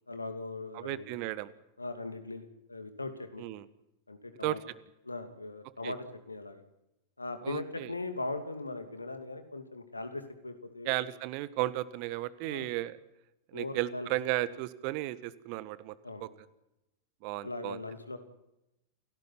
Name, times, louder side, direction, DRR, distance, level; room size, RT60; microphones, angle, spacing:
voice 1, 0.1-1.1 1.8-3.4 4.1-4.6 5.0-6.6 7.2-11.1 12.4-12.7 13.5-14.1 16.0-16.3 17.4-18.2, left 2 dB, 80° left, 8 dB, 2.8 m, -39 dB
voice 2, 0.7-1.5 3.4-3.7 4.4-4.6 5.8-5.9 7.4-7.9 10.8-13.0 13.5-16.3 17.2-17.8, right 16 dB, 45° right, 16 dB, 1.4 m, -34 dB
29.0 x 18.0 x 6.0 m, 0.88 s
figure-of-eight pair, 90°, 0 cm